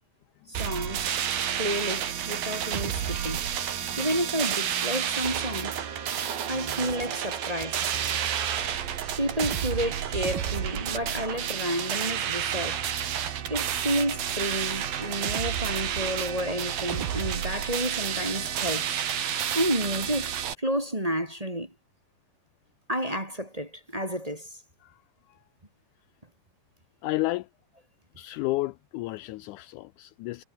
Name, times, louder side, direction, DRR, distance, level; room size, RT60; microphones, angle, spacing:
voice 1, 0.5-1.1 1.6-3.4 4.0-5.8 6.5-8.0 9.2-12.8 13.5-18.9 19.5-20.3 20.6-21.7 22.9-24.5, equal, 10° right, 2.4 m, -30 dB
sound 1, 0.5-20.5, right 9 dB, 75° right, 4.2 m, -30 dB
Brass instrument, 2.8-7.3, left 1 dB, 5° left, 2.3 m, -49 dB
voice 2, 27.0-27.5 28.2-30.4, left 19 dB, 90° left, 1.7 m, -32 dB
omnidirectional pair, 4.2 m